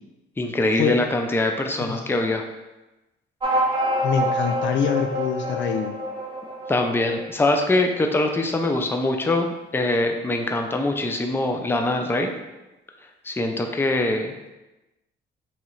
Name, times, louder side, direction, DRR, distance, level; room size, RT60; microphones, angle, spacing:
voice 1, 0.4-2.4 6.7-12.3 13.2-14.5, left 2 dB, 10° left, 4 dB, 0.4 m, -23 dB
voice 2, 1.8-2.1 4.0-5.9, left 7 dB, 70° left, 6 dB, 0.4 m, -25 dB
sound 1, 3.4-8.4, equal, 25° right, 0.8 m, -27 dB
3.1 x 2.8 x 3.9 m, 1.0 s
cardioid pair, 90°, 20 cm